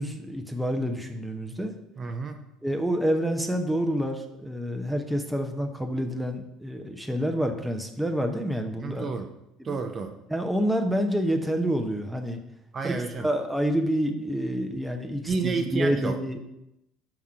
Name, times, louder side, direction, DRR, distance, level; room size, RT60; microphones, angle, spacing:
voice 1, 0.0-1.7 2.6-9.1 9.6-9.7 10.3-12.4 12.8-16.4, equal, 5° right, 4 dB, 0.8 m, -28 dB
voice 2, 2.0-2.4 8.8-9.3 9.6-10.1 12.7-13.3 15.3-16.1, right 5 dB, 40° right, 6 dB, 0.7 m, -30 dB
5.9 x 3.6 x 5.7 m, 0.85 s
hypercardioid pair, 65°, 0 cm